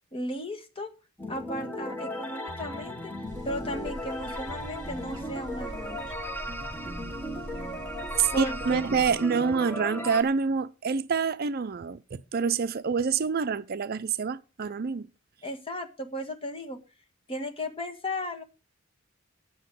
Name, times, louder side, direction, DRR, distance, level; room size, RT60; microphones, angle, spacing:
voice 1, 0.1-0.9 1.3-3.1 3.4-6.0 8.3-9.1 15.4-16.8 17.3-18.4, equal, 25° left, 1.7 m, -35 dB
sound 1, 1.2-10.2, equal, 10° left, 1.3 m, -36 dB
sound 2, 3.3-9.1, equal, 20° right, 4.9 m, -43 dB
voice 2, 8.2-15.1, right 5 dB, 50° right, 0.5 m, -27 dB
9.6 x 8.0 x 6.2 m
head